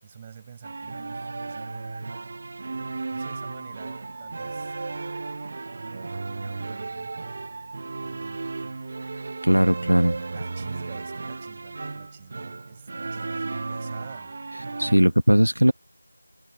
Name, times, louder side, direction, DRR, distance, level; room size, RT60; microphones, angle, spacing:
voice 1, 0.0-1.8 3.1-4.7 5.7-7.4 8.0-8.8 10.2-14.4, right 8 dB, 15° right, 7.2 m, -47 dB
sound 1, 0.6-15.0, right 3 dB, 30° right, 1.1 m, -34 dB
voice 2, 9.4-10.2 14.8-15.7, equal, 80° right, 1.3 m, -18 dB
figure-of-eight pair, 170°, 0 cm